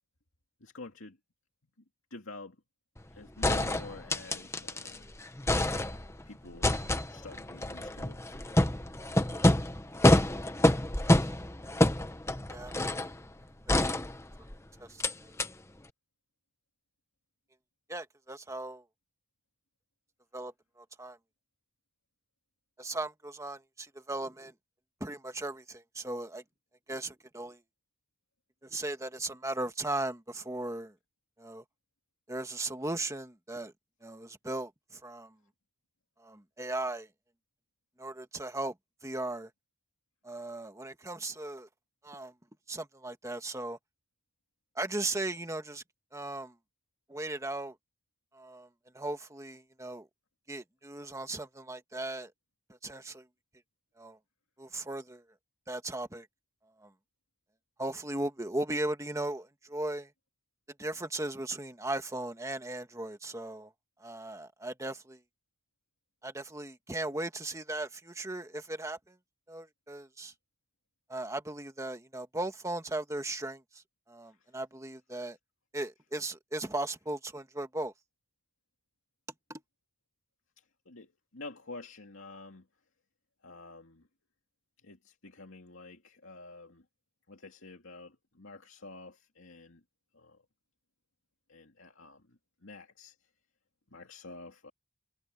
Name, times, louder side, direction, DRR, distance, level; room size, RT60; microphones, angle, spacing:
voice 1, 0.6-1.2 2.1-2.6 3.1-5.1 6.3-8.2 80.9-81.1 81.3-82.6 83.4-84.1 84.8-86.8 87.3-89.8 90.1-90.4 91.5-92.2 92.6-93.1 93.9-94.7, left 3 dB, 65° left, 2.5 m, -48 dB
sound 1, 3.0-3.1 3.4-5.0 5.3-6.2 6.6-13.2 13.7-14.5 15.0-15.1 15.4-15.5, left 1 dB, 15° left, 1.1 m, -27 dB
voice 2, 14.8-15.3 17.9-18.8 20.3-21.2 22.8-24.5 25.0-26.4 26.9-27.6 28.6-30.9 31.4-31.6 32.3-33.7 34.0-35.3 36.2-37.1 38.0-38.7 39.0-39.5 40.2-41.7 42.0-42.3 42.7-43.8 44.7-45.8 46.1-46.5 47.1-47.7 48.3-48.7 48.9-50.1 50.5-52.3 52.7-53.3 54.0-54.2 54.6-55.2 55.7-56.3 56.8-56.9 57.8-60.1 60.8-63.7 64.0-65.2 66.2-69.2 69.5-70.3 71.1-75.4 75.7-77.9 79.5-79.6, right 2 dB, 15° right, 1.7 m, -37 dB
head